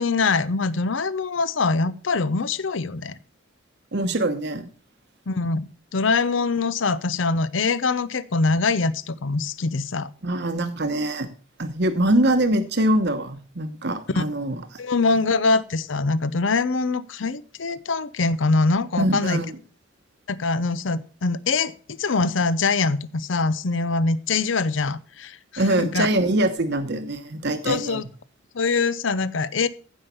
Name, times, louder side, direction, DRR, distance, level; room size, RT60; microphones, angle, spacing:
voice 1, 0.0-3.2 5.3-10.1 14.1-14.2 14.8-19.4 20.3-26.1 27.6-28.1 28.5-29.7, left 3 dB, 70° left, 17 dB, 0.7 m, -23 dB
voice 2, 3.9-4.7 10.2-11.3 11.6-14.8 19.0-19.5 25.6-28.0, right 1 dB, 55° right, 8 dB, 1.1 m, -23 dB
15.0 x 5.6 x 6.9 m, 0.40 s
head